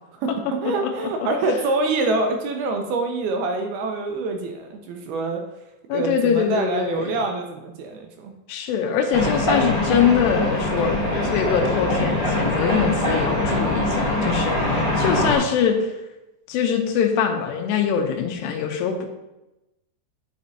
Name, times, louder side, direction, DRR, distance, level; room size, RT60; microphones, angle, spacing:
voice 1, 0.6-5.4 5.9-8.3, right 3 dB, 85° right, 4 dB, 2.3 m, -25 dB
voice 2, 5.9-7.1 8.5-16.0 16.5-19.1, left 7 dB, 85° left, 4 dB, 2.9 m, -23 dB
sound 1, 9.1-15.4, left 1 dB, 40° left, 2.4 m, -23 dB
9.6 x 5.2 x 2.7 m, 0.98 s
omnidirectional pair, 4.8 m